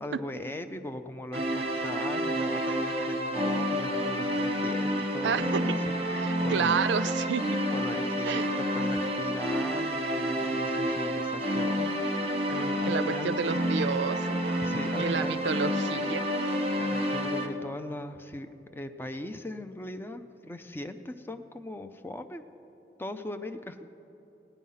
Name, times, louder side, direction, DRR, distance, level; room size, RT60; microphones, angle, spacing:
voice 1, 0.0-5.8 6.1-6.7 7.7-13.4 14.6-15.4 16.8-22.4 23.0-23.8, left 1 dB, 10° left, 8 dB, 0.4 m, -39 dB
sound 1, 1.3-17.5, equal, 35° right, 1.1 m, -29 dB
voice 2, 5.2-5.6 6.2-7.4 8.2-8.5 12.9-14.4 15.0-16.2, right 6 dB, 85° right, 14 dB, 0.4 m, -30 dB
16.0 x 10.0 x 5.6 m, 3.0 s
head